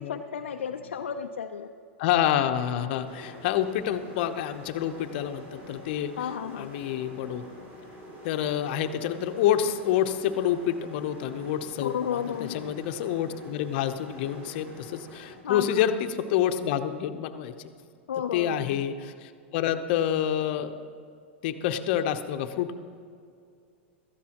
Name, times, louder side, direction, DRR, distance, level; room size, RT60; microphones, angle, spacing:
voice 1, 0.0-1.7 6.2-6.7 11.8-12.8 15.4-15.7 18.1-18.8, left 8 dB, 85° left, 4 dB, 0.5 m, -33 dB
voice 2, 2.0-6.1 6.5-7.4 8.2-17.5 18.3-20.7 21.4-22.8, left 10 dB, 55° left, 8 dB, 0.8 m, -28 dB
sound 1, 3.0-15.3, equal, 35° right, 3.6 m, -46 dB
16.5 x 13.5 x 3.0 m, 2.4 s
hypercardioid pair, 115°, 6 cm